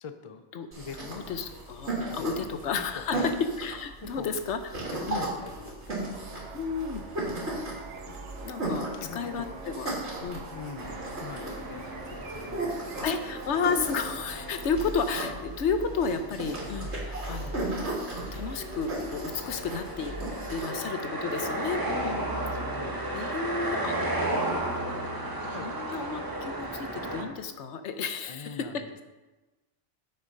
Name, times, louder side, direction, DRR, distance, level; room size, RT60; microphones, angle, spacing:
voice 1, 0.0-0.5 0.8-1.5 2.1-2.5 2.9-3.3 4.0-4.3 4.9-6.4 8.1-8.2 8.7-9.6 10.5-12.9 19.4-19.7 22.6-23.9 24.2-24.8 25.5-25.7 28.3-29.0, left 5 dB, 35° left, 8 dB, 0.5 m, -44 dB
sound 1, 0.7-20.7, right 1 dB, 70° right, 2.9 m, -36 dB
voice 2, 1.0-3.3 3.6-4.6 5.1-5.3 6.5-7.0 8.4-9.9 10.2-10.4 13.0-17.8 18.1-20.1 20.5-22.4 22.7-22.8 23.1-24.0 25.6-28.8, left 5 dB, 75° left, 8 dB, 1.1 m, -32 dB
sound 2, 6.0-14.7, right 4 dB, 85° right, 1.2 m, -45 dB
sound 3, 10.8-27.2, right 1 dB, 20° right, 1.1 m, -35 dB
8.6 x 6.9 x 5.3 m, 1.1 s
omnidirectional pair, 1.2 m